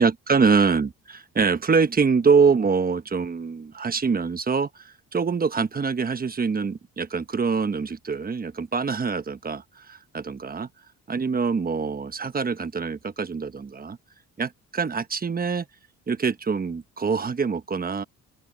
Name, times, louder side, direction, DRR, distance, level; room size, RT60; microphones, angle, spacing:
voice 1, 0.0-10.7 11.1-14.0 14.4-15.7 16.1-18.0, right 5 dB, 30° right, 1.1 m, -24 dB
open air
cardioid pair, 90°, 30 cm